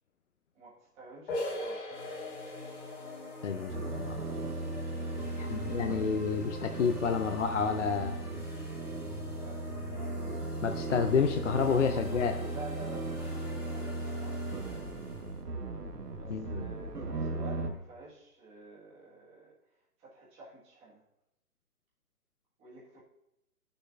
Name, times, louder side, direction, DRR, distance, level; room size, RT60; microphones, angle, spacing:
voice 1, 0.5-2.2 4.8-5.1 8.8-9.6 11.7-14.8 16.1-21.0 22.6-23.0, right 3 dB, 10° right, -6 dB, 1.6 m, -50 dB
sound 1, 1.3-6.8, left 1 dB, 35° left, 2.0 m, -42 dB
sound 2, 1.9-15.4, equal, 10° left, 1.1 m, -47 dB
voice 2, 3.4-4.2 5.4-8.2 10.6-12.3 16.3-16.6, left 6 dB, 55° left, 6 dB, 0.6 m, -29 dB
sound 3, 3.7-17.7, right 2 dB, 90° right, 1.4 m, -37 dB
11.0 x 6.8 x 2.5 m, 0.88 s
hypercardioid pair, 155°, 46 cm